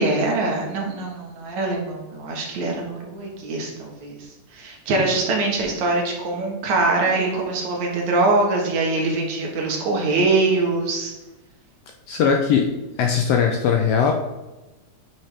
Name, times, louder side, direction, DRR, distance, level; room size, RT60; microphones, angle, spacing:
voice 1, 0.0-11.1, right 3 dB, 75° right, -1 dB, 2.8 m, -23 dB
voice 2, 12.1-12.7 13.0-14.1, left 7 dB, 75° left, 2 dB, 1.5 m, -19 dB
8.9 x 5.6 x 3.5 m, 1.1 s
omnidirectional pair, 3.4 m